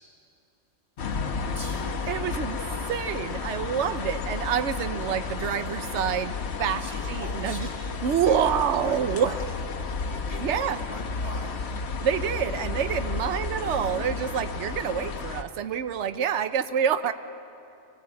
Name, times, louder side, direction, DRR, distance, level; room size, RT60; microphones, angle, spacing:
sound 1, 1.0-15.4, left 4 dB, 65° left, 1.2 m, -32 dB
voice 1, 1.5-2.4 6.8-7.7 8.2-9.4 10.0-11.8, equal, 30° left, -2 dB, 3.0 m, -42 dB
voice 2, 2.1-2.6 2.9-6.3 6.6-7.7 8.0-9.4 10.4-10.8 12.0-17.1, right 8 dB, 75° right, 11 dB, 1.1 m, -27 dB
25.0 x 18.0 x 8.4 m, 2.7 s
omnidirectional pair, 1.2 m